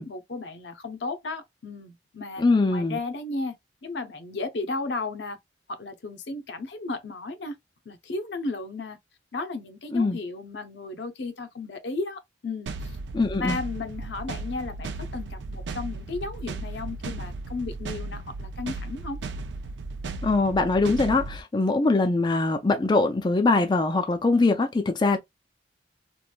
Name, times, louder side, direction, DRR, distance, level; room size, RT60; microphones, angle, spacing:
voice 1, 0.0-2.4 2.7-3.5 3.8-5.4 5.7-7.6 7.9-9.0 9.3-13.0 13.4-19.2, left 3 dB, 70° left, 0.6 m, -34 dB
voice 2, 2.4-3.0 9.9-10.2 13.1-13.6 20.2-25.2, left 3 dB, 25° left, 0.3 m, -22 dB
sound 1, 12.7-21.4, right 3 dB, 75° right, 0.4 m, -35 dB
3.1 x 2.5 x 2.2 m
head